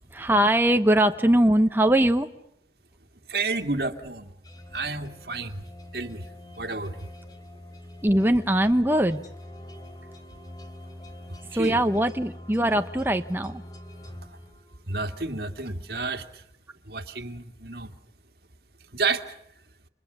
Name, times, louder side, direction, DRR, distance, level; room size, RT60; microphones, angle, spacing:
voice 1, 0.1-2.3 8.0-9.2 11.5-13.6, right 1 dB, 10° right, 7 dB, 1.0 m, -21 dB
voice 2, 3.3-4.3 4.7-5.6 5.9-6.2 6.6-7.0 11.6-11.8 14.9-16.2 16.9-17.9 18.9-19.3, right 3 dB, 60° right, 7 dB, 2.2 m, -30 dB
sound 1, 4.4-15.1, left 1 dB, 20° left, 3.2 m, -44 dB
29.5 x 26.0 x 6.9 m, 0.76 s
head